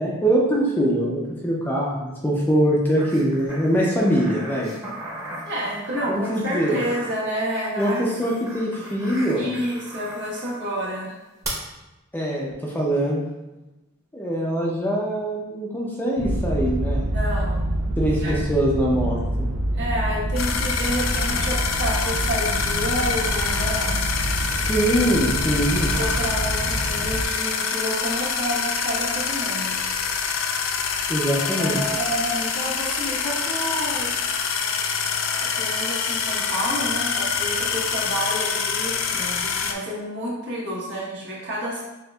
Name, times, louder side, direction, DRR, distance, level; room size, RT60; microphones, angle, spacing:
voice 1, 0.0-4.7 6.1-6.8 7.8-9.6 12.1-13.2 14.1-17.1 18.0-19.5 24.7-25.9 31.1-31.8, right 1 dB, 10° left, -3 dB, 0.5 m, -23 dB
sound 1, 3.0-10.6 11.4-11.5, right 1 dB, 15° right, 0.9 m, -38 dB
voice 2, 5.4-8.1 9.4-11.2 17.0-17.7 18.2-18.4 19.7-24.0 25.9-29.8 31.4-34.1 35.3-41.8, equal, 60° right, -6 dB, 1.3 m, -29 dB
sound 2, 16.2-27.3, right 1 dB, 85° right, 0.5 m, -27 dB
sound 3, 20.4-39.7, left 6 dB, 70° left, 0.4 m, -26 dB
6.3 x 2.5 x 2.3 m, 1.0 s
head